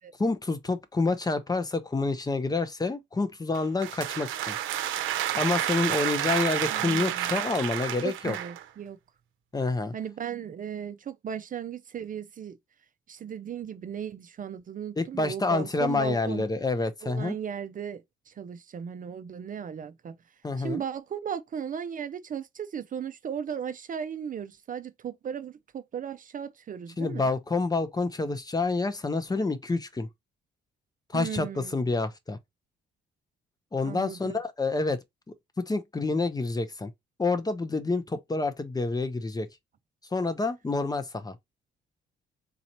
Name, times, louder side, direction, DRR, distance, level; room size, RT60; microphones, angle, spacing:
voice 1, 0.2-4.6 5.3-8.4 9.5-9.9 15.0-17.4 20.4-20.8 27.0-30.1 31.1-32.4 33.7-35.0 35.3-35.4 35.7-36.9 37.2-39.5 40.1-41.3, left 3 dB, 20° left, 0.7 m, -28 dB
sound 1, 3.5-8.7, right 12 dB, 80° right, 0.7 m, -30 dB
voice 2, 6.7-7.3 8.0-9.0 9.9-12.6 13.1-16.4 17.0-20.2 20.6-27.3 31.1-31.8 33.8-34.4, right 8 dB, 45° right, 0.5 m, -36 dB
4.0 x 2.9 x 2.9 m
cardioid pair, 90°, 20 cm